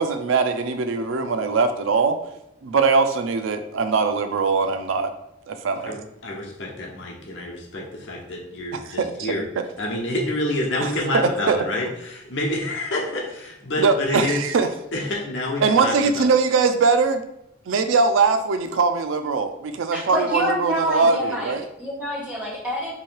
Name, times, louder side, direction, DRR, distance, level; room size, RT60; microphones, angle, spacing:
voice 1, 0.0-2.2 2.6-5.1 5.5-5.9 8.7-9.6 11.1-11.6 13.8-14.7 15.6-17.2 17.7-21.6, right 4 dB, 80° right, 8 dB, 0.4 m, -21 dB
voice 2, 6.2-9.4 9.8-14.4 14.9-16.2, left 1 dB, 70° left, -1 dB, 0.9 m, -28 dB
voice 3, 19.9-21.5 21.8-22.9, equal, 5° right, -6 dB, 1.0 m, -27 dB
3.0 x 2.8 x 4.4 m, 0.83 s
head